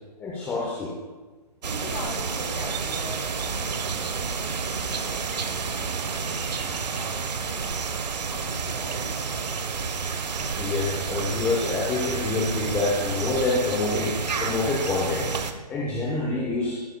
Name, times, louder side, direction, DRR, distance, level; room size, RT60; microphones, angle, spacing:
voice 1, 0.2-0.9 10.6-15.3 15.7-16.8, left 3 dB, 10° left, -4 dB, 0.8 m, -26 dB
sound 1, 1.6-15.5, right 5 dB, 75° right, 1.0 m, -30 dB
voice 2, 1.7-7.8 8.3-9.7, left 2 dB, 30° left, 1 dB, 1.9 m, -42 dB
14.0 x 11.5 x 2.2 m, 1.3 s
hypercardioid pair, 155°, 21 cm